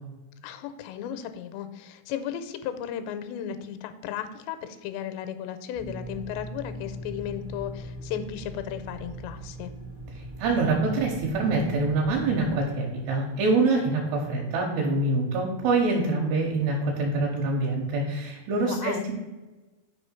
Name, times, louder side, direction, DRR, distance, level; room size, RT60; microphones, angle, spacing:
voice 1, 0.4-9.7 18.6-19.1, left 9 dB, 85° left, 10 dB, 2.7 m, -35 dB
sound 1, 5.7-12.7, right 1 dB, 30° right, 0.6 m, -39 dB
voice 2, 10.1-19.1, right 3 dB, 75° right, -2 dB, 2.9 m, -25 dB
6.2 x 4.9 x 4.4 m, 1.2 s
omnidirectional pair, 5.0 m